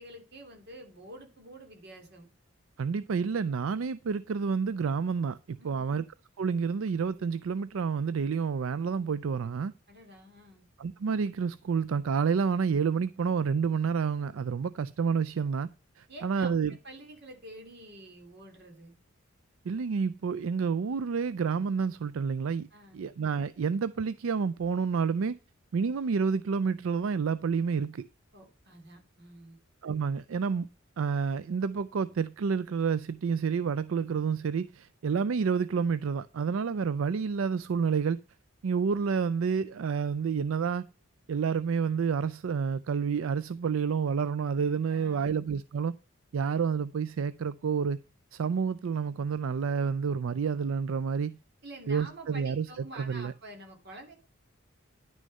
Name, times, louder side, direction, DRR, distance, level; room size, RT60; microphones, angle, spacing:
voice 1, 0.0-2.3 5.6-6.0 9.9-10.6 16.1-18.9 22.7-23.0 28.3-29.6 44.9-45.3 51.6-54.2, right 1 dB, 50° right, 2.7 m, -48 dB
voice 2, 2.8-6.0 6.4-9.7 10.8-15.7 16.0-16.7 19.6-22.7 22.9-25.4 25.7-28.0 29.8-30.7 31.0-38.2 38.6-40.8 41.3-45.9 46.3-48.0 48.3-51.4 51.9-52.7 52.9-53.3, right 6 dB, 75° right, 0.4 m, -29 dB
10.5 x 6.3 x 5.4 m
head